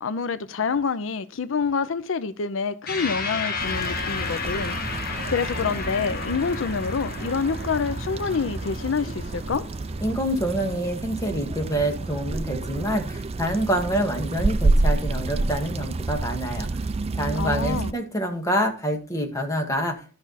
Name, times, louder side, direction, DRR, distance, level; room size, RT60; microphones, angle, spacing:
voice 1, 0.0-9.7 17.3-17.9, left 5 dB, 85° left, 0.6 m, -27 dB
sound 1, 2.9-11.5, left 4 dB, 50° left, 1.7 m, -33 dB
sound 2, 3.6-17.9, right 2 dB, 30° right, 0.4 m, -29 dB
voice 2, 10.0-16.7 17.2-20.0, equal, 15° left, 1.8 m, -26 dB
12.0 x 5.9 x 4.0 m
head